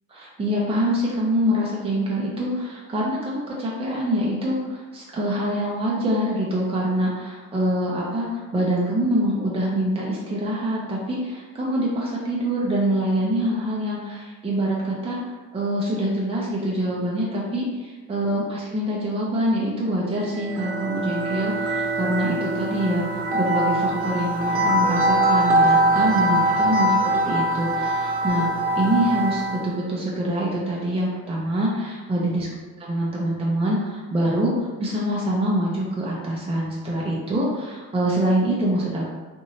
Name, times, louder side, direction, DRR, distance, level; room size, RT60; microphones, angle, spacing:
voice 1, 0.1-15.2 15.5-28.5 28.8-32.5 32.8-39.1, right 1 dB, 20° right, -5 dB, 0.6 m, -25 dB
sound 1, 20.2-29.7, right 1 dB, 50° right, 0.8 m, -22 dB
2.9 x 2.6 x 2.7 m, 1.3 s
cardioid pair, 90°, 30 cm